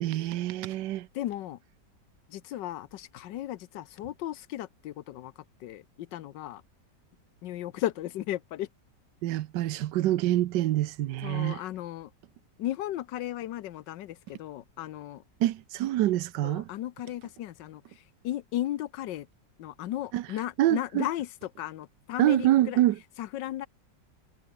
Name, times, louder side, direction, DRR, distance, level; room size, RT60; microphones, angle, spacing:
voice 1, 0.0-1.1 9.2-11.6 15.4-16.7 20.1-20.2 20.6-21.0 22.2-23.0, right 14 dB, 80° right, 1.3 m, -26 dB
voice 2, 1.1-1.6 2.3-5.3 5.6-6.6 7.4-8.7 11.2-12.1 12.6-15.2 16.4-17.8 18.2-19.3 19.6-22.8 23.2-23.7, left 13 dB, 80° left, 1.5 m, -35 dB
omnidirectional pair, 1.9 m